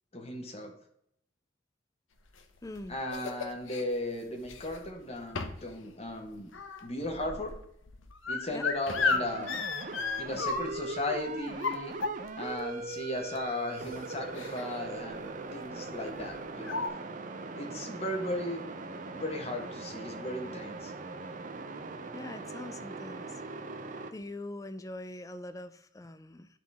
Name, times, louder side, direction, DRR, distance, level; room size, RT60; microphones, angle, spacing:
voice 1, 0.1-0.7 2.9-6.5 6.8-7.6 8.3-9.6 10.2-12.0 12.4-17.0 17.5-18.7 19.1-20.9, left 1 dB, 30° left, 3 dB, 1.3 m, -36 dB
sound 1, 2.4-3.8 4.4-4.9 5.3-5.7 6.0-10.9 11.5-12.5 13.4-13.5 13.8-14.0 14.3-14.8 15.0-15.3 16.2-16.3 16.6-16.9, left 4 dB, 90° left, 0.8 m, -34 dB
voice 2, 2.6-3.0 8.5-8.7 22.1-23.4 24.1-26.5, left 1 dB, 15° left, 11 dB, 0.4 m, -43 dB
sound 2, 8.9-24.1, right 3 dB, 40° right, 0.6 m, -40 dB
10.5 x 3.9 x 3.5 m, 0.74 s
head